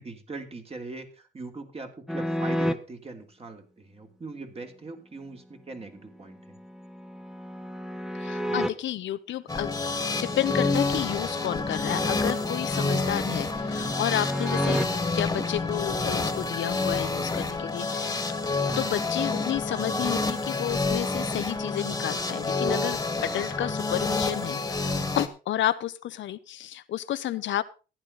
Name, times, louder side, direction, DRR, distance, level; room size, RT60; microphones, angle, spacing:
voice 1, 0.0-6.6, right 3 dB, 30° right, 4 dB, 2.9 m, -41 dB
sound 1, 2.1-2.7 6.1-8.7 11.8-14.8, equal, 5° right, 1.2 m, -32 dB
voice 2, 8.1-9.7 10.1-18.2 18.8-27.6, left 12 dB, 70° left, 13 dB, 0.8 m, -31 dB
sound 2, 9.5-25.3, left 3 dB, 15° left, 1.9 m, -28 dB
15.0 x 10.5 x 4.0 m, 0.34 s
cardioid pair, 90°, 20 cm